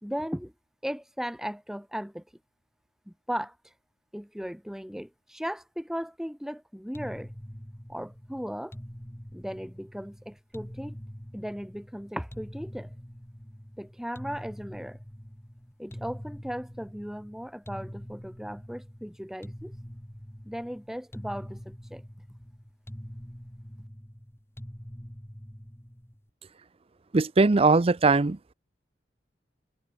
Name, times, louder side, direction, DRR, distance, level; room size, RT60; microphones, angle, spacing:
voice 1, 0.0-0.5 0.8-2.2 3.1-3.6 4.1-7.3 7.9-8.8 9.3-11.0 11.3-12.9 13.8-15.0 15.8-19.7 20.5-22.0, equal, 5° right, 2.0 m, -37 dB
sound 1, 6.9-26.3, equal, 15° left, 2.1 m, -44 dB
voice 2, 27.1-28.4, right 3 dB, 35° right, 0.6 m, -20 dB
head